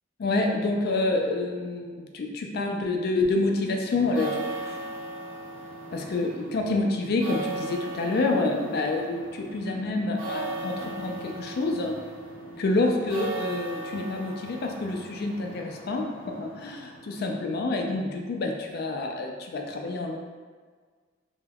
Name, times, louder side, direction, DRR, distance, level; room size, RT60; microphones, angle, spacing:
voice 1, 0.2-4.8 5.9-11.9 12.6-20.2, left 2 dB, 50° left, 1 dB, 0.3 m, -28 dB
sound 1, 3.9-17.5, right 2 dB, 75° right, 0.6 m, -38 dB
3.3 x 2.1 x 2.2 m, 1.5 s
head